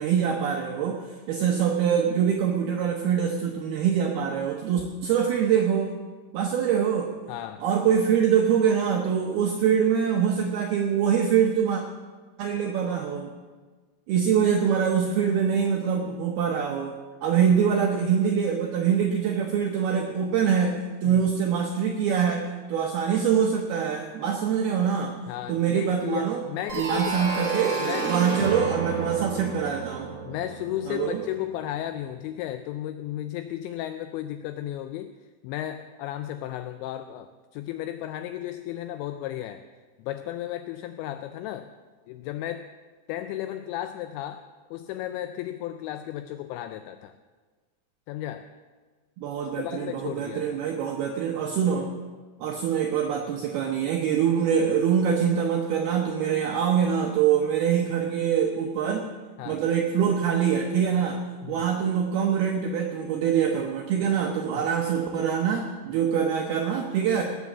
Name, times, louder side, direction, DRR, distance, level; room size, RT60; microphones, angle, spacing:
voice 1, 0.0-5.9 6.3-7.1 7.6-11.8 12.4-13.3 14.1-16.9 17.2-25.1 25.5-26.4 26.7-27.8 28.0-30.1 30.9-31.2 49.2-51.9 52.4-59.1 59.5-61.2 61.5-67.2, right 8 dB, 80° right, 3 dB, 2.2 m, -24 dB
voice 2, 7.3-7.6 21.1-21.3 25.3-27.2 27.8-28.2 30.2-35.1 35.4-39.6 40.0-41.7 42.1-42.7 43.1-47.2 48.1-48.5 49.4-50.6 59.4-59.6 61.4-61.7 64.5-64.7, left 12 dB, 85° left, 10 dB, 2.5 m, -34 dB
sound 1, 26.7-31.4, right 3 dB, 45° right, 1.7 m, -31 dB
18.0 x 7.3 x 7.2 m, 1.4 s
omnidirectional pair, 5.6 m